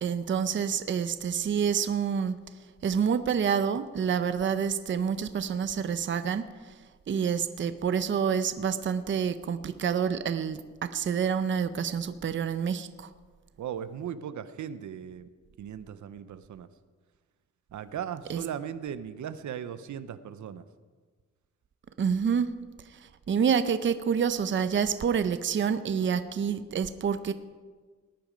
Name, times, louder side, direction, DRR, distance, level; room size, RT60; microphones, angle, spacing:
voice 1, 0.0-2.4 2.8-6.5 7.1-13.1 18.3-18.4 22.0-22.5 23.3-27.3, right 7 dB, 40° right, 11 dB, 0.6 m, -28 dB
voice 2, 13.6-15.3 15.6-16.7 17.7-20.6, right 9 dB, 75° right, 12 dB, 0.7 m, -37 dB
18.0 x 10.5 x 5.1 m, 1.4 s
wide cardioid pair, 155°, 30 cm